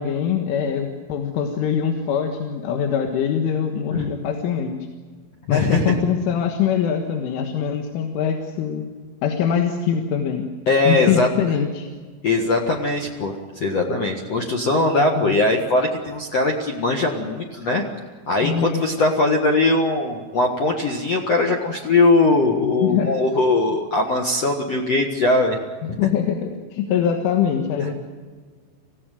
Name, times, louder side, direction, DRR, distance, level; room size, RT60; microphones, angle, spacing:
voice 1, 0.0-4.9 5.5-8.9 9.2-10.5 10.9-11.9 15.0-15.3 18.4-18.8 22.6-23.1 25.8-27.9, left 8 dB, 85° left, 4 dB, 4.0 m, -23 dB
voice 2, 5.5-5.9 10.7-11.3 12.2-17.8 18.3-25.6 27.8-27.9, left 2 dB, 60° left, 1 dB, 1.7 m, -20 dB
26.0 x 16.5 x 9.1 m, 1.5 s
omnidirectional pair, 5.5 m